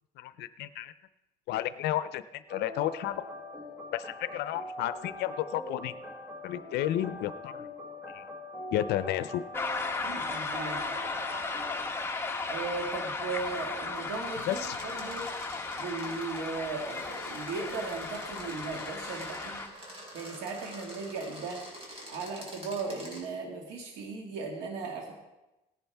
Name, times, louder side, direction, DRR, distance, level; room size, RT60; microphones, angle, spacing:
voice 1, 0.2-0.9 1.5-3.2 3.9-5.9 6.4-7.7 8.1-8.2 8.7-9.4 14.5-14.8, left 13 dB, 80° left, 13 dB, 0.5 m, -32 dB
sound 1, 2.5-11.8, left 1 dB, 15° right, 1.6 m, -43 dB
sound 2, 9.5-19.7, left 3 dB, 15° left, 1.2 m, -35 dB
voice 2, 10.0-10.8 12.5-15.3 15.8-19.6 20.1-21.6 22.1-25.2, right 4 dB, 90° right, 0 dB, 2.0 m, -37 dB
sound 3, 14.0-23.2, equal, 35° right, 4.8 m, -47 dB
18.0 x 11.0 x 3.5 m, 1.0 s
cardioid pair, 110°, 17 cm